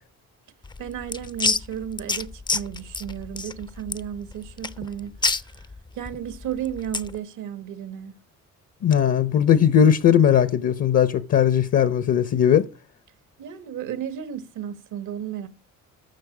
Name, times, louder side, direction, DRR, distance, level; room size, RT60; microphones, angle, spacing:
sound 1, 0.6-7.2, left 4 dB, 15° left, 0.4 m, -29 dB
voice 1, 0.8-5.1 5.9-8.1 13.4-15.5, right 9 dB, 80° right, 1.3 m, -33 dB
voice 2, 8.8-12.7, left 9 dB, 55° left, 0.7 m, -18 dB
13.0 x 6.5 x 4.9 m
cardioid pair, 90°, 30 cm